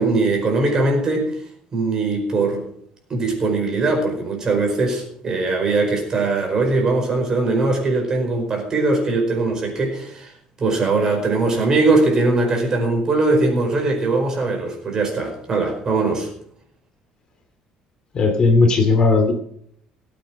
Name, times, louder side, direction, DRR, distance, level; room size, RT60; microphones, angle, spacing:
voice 1, 0.0-1.4 1.7-2.7 3.1-16.3, right 3 dB, 30° right, 2 dB, 4.9 m, -20 dB
voice 2, 18.1-19.3, left 3 dB, 35° left, 5 dB, 2.4 m, -16 dB
18.5 x 8.6 x 6.3 m, 0.66 s
cardioid pair, 160°, 2 cm